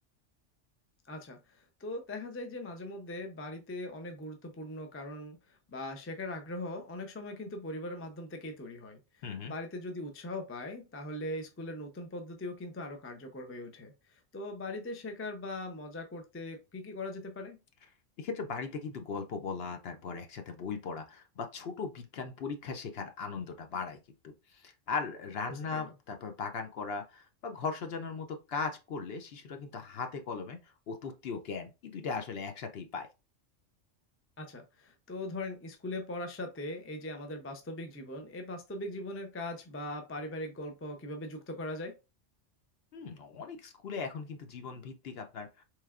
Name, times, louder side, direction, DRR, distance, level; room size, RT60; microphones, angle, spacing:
voice 1, 1.1-9.0 9.4-17.6 25.7-25.9 34.4-42.0, left 1 dB, 20° left, 0.4 m, -40 dB
voice 2, 9.2-9.5 18.2-24.0 24.2-33.1 42.9-45.6, left 5 dB, 60° left, 0.8 m, -38 dB
4.3 x 3.2 x 2.4 m
omnidirectional pair, 1.3 m